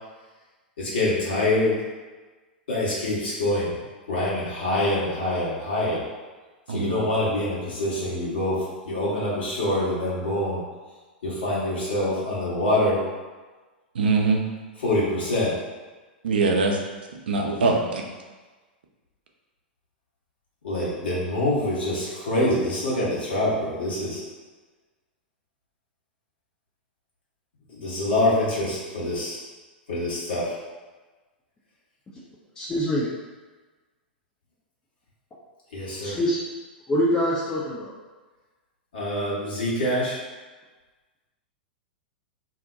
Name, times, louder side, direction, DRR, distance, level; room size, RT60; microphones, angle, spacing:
voice 1, 0.8-1.7 2.7-3.8 4.1-6.0 6.7-8.6 8.8-10.6 11.2-13.0 14.8-15.5 20.6-24.2 27.7-29.4 29.9-30.6 35.7-36.2 38.9-40.2, left 1 dB, 70° left, -8 dB, 1.2 m, -25 dB
voice 2, 6.7-7.0 13.9-14.4 16.2-16.8 17.3-18.0, right 3 dB, 70° right, 1 dB, 0.5 m, -22 dB
voice 3, 32.6-33.1 36.0-36.4 36.9-37.9, equal, 15° left, -6 dB, 0.5 m, -24 dB
2.7 x 2.1 x 3.7 m, 1.3 s
figure-of-eight pair, 100°, 6 cm